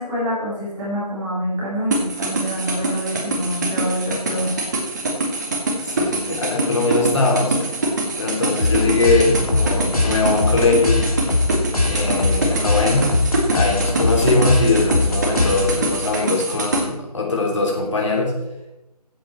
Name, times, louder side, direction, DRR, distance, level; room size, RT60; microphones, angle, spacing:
voice 1, 0.0-4.5, equal, 10° right, -9 dB, 2.4 m, -26 dB
sound 1, 1.9-16.8, right 2 dB, 30° right, 2.0 m, -24 dB
voice 2, 5.8-7.7 8.2-11.1 11.9-13.1 13.5-18.4, left 3 dB, 50° left, 0 dB, 3.5 m, -21 dB
sound 2, 8.6-16.0, left 2 dB, 65° left, 3.0 m, -21 dB
14.0 x 8.3 x 4.5 m, 0.92 s
figure-of-eight pair, 160°, 20 cm